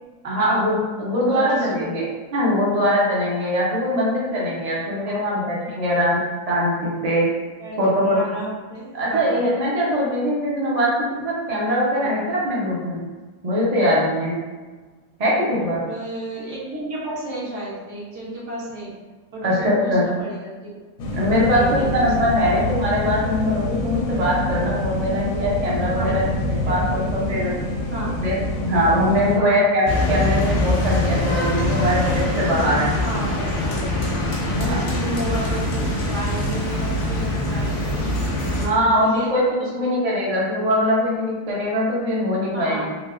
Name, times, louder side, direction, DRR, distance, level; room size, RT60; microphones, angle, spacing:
voice 1, 0.2-2.0 2.3-6.2 6.5-7.3 7.8-8.2 8.9-10.9 11.2-13.0 13.4-14.3 15.2-15.8 19.4-20.1 21.1-27.5 28.2-32.9 34.6-34.9 38.6-42.9, equal, 40° right, -6 dB, 0.6 m, -22 dB
voice 2, 1.3-1.8 3.9-4.0 5.0-5.2 7.6-9.4 12.0-12.1 15.8-18.9 19.3-20.8 21.4-22.1 22.4-22.5 25.9-26.3 26.6-27.0 27.9-28.2 29.3-29.6 31.6-31.7 33.0-34.0 34.9-38.1 38.8-39.3 39.6-39.9 42.5-43.0, right 1 dB, 60° right, -7 dB, 1.2 m, -33 dB
sound 1, 21.0-29.4, left 1 dB, 80° left, 1.0 m, -26 dB
sound 2, 29.9-38.7, left 1 dB, 60° left, 1.0 m, -23 dB
3.2 x 2.6 x 2.4 m, 1.3 s
omnidirectional pair, 1.5 m